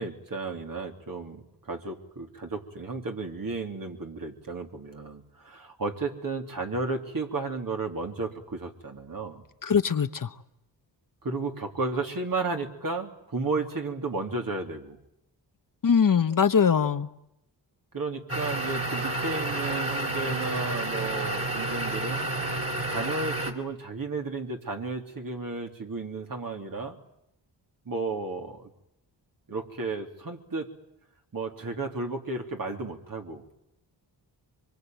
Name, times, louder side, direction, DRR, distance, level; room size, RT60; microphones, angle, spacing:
voice 1, 0.0-9.4 11.2-15.0 17.9-22.3 22.9-27.0 27.8-28.7 29.5-30.7 31.3-33.4, right 3 dB, 50° right, 3 dB, 3.5 m, -33 dB
voice 2, 9.6-10.3 15.8-17.1, left 6 dB, 50° left, 9 dB, 1.2 m, -22 dB
sound 1, 18.3-23.5, right 1 dB, 30° right, 4.2 m, -30 dB
25.0 x 23.5 x 9.5 m, 0.81 s
cardioid pair, 75°, 43 cm